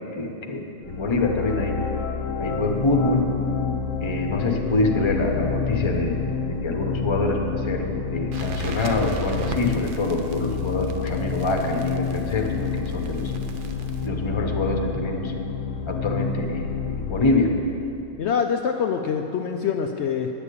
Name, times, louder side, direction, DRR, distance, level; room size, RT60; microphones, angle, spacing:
voice 1, 0.2-1.8 2.4-3.3 4.0-6.2 6.5-13.3 14.0-15.3 15.9-17.5, left 2 dB, 25° left, 2 dB, 0.7 m, -25 dB
sound 1, 0.9-17.3, left 6 dB, 65° left, 0.9 m, -29 dB
Crackle, 8.3-14.1, right 5 dB, 75° right, 0.4 m, -40 dB
voice 2, 18.2-20.3, left 7 dB, 85° left, 4 dB, 0.6 m, -25 dB
9.8 x 7.2 x 8.3 m, 2.9 s
omnidirectional pair, 1.8 m